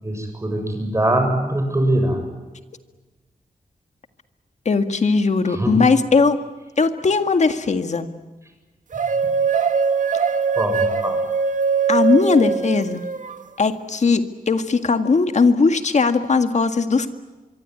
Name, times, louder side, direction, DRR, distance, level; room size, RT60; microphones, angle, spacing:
voice 1, 0.0-2.2 5.5-5.8 10.6-11.2, right 1 dB, 20° right, 5 dB, 7.4 m, -22 dB
voice 2, 4.7-6.4 6.8-8.1 11.9-13.0 13.6-17.1, left 4 dB, 55° left, 8 dB, 1.9 m, -18 dB
sound 1, 8.9-13.4, right 5 dB, 65° right, 1.9 m, -21 dB
24.5 x 24.0 x 9.7 m, 1.2 s
wide cardioid pair, 115°, 14 cm